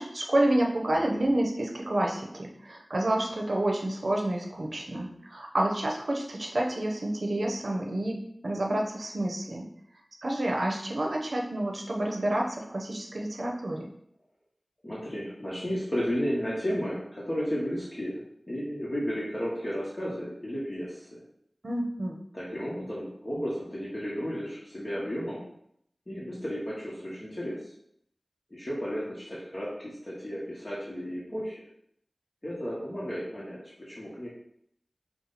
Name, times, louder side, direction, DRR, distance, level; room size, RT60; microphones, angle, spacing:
voice 1, 0.0-8.2 8.4-9.7 10.2-13.9 21.6-22.2, right 1 dB, 80° right, 0 dB, 0.8 m, -29 dB
voice 2, 14.8-18.2 18.5-21.2 22.3-25.4 26.1-27.6 28.5-31.6 32.4-34.3, equal, 40° left, -7 dB, 1.2 m, -33 dB
5.8 x 2.2 x 4.0 m, 0.72 s
wide cardioid pair, 45°, 0 cm